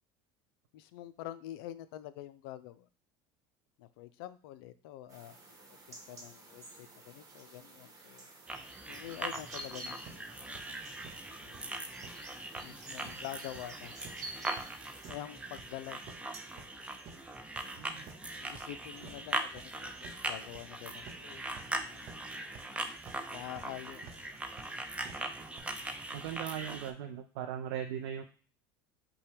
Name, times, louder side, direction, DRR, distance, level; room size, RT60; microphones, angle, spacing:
voice 1, 0.7-2.9 3.8-8.3 8.9-10.7 11.4-11.8 12.6-14.0 15.1-16.7 18.2-21.4 21.8-22.1 23.3-24.4, left 13 dB, 75° left, 14 dB, 0.4 m, -47 dB
sound 1, 5.1-15.1, right 2 dB, 30° right, 1.2 m, -50 dB
sound 2, 8.5-26.9, right 2 dB, 10° right, 0.5 m, -41 dB
sound 3, 9.6-25.6, right 5 dB, 50° right, 0.8 m, -53 dB
voice 2, 17.8-18.1 26.1-28.2, right 9 dB, 75° right, 5 dB, 0.4 m, -39 dB
5.3 x 2.2 x 3.4 m, 0.38 s
hypercardioid pair, 90°, 13 cm